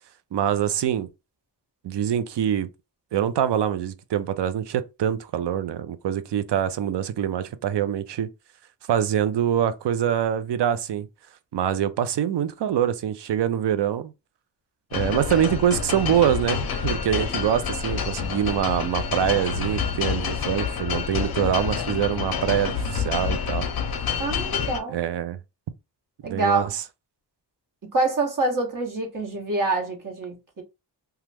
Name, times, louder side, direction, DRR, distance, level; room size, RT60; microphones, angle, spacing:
voice 1, 0.3-1.1 1.8-2.7 3.1-8.3 8.9-11.1 11.5-14.1 14.9-23.7 24.9-25.4 26.2-26.7, right 9 dB, 65° right, 0.5 m, -24 dB
sound 1, 14.9-24.8, left 6 dB, 55° left, 0.6 m, -28 dB
voice 2, 24.2-25.0 26.2-26.7 27.9-30.6, right 2 dB, 45° right, 1.1 m, -26 dB
3.0 x 2.3 x 3.3 m
wide cardioid pair, 155°, 44 cm